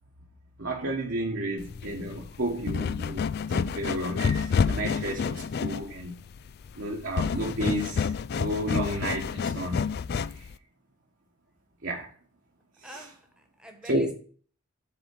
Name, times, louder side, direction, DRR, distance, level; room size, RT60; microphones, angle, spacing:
voice 1, 0.6-6.2 6.8-9.9 10.3-10.5 11.8-12.1 12.8-13.0 13.8-14.1, right 1 dB, 55° right, 1.3 m, -32 dB
sound 1, 1.6-10.5, left 6 dB, 45° left, 0.3 m, -29 dB
voice 2, 12.8-14.1, left 1 dB, 5° right, 1.3 m, -46 dB
7.1 x 4.4 x 6.5 m
head